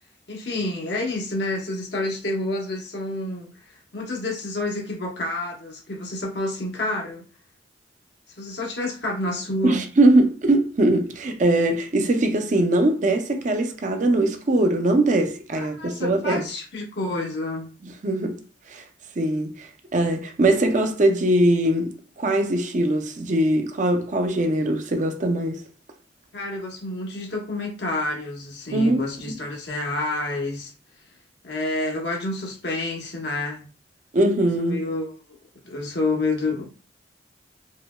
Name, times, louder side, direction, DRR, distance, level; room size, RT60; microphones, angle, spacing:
voice 1, 0.3-3.5 3.9-7.2 8.4-9.8 15.6-17.7 26.3-30.7 31.4-33.7 34.6-35.1 35.6-36.7, left 2 dB, 70° left, 1.0 m, -29 dB
voice 2, 9.6-16.5 18.0-18.4 18.7-18.8 19.2-25.6 28.7-29.3 34.1-34.8, right 1 dB, 45° right, 0.5 m, -21 dB
4.9 x 2.2 x 2.2 m
head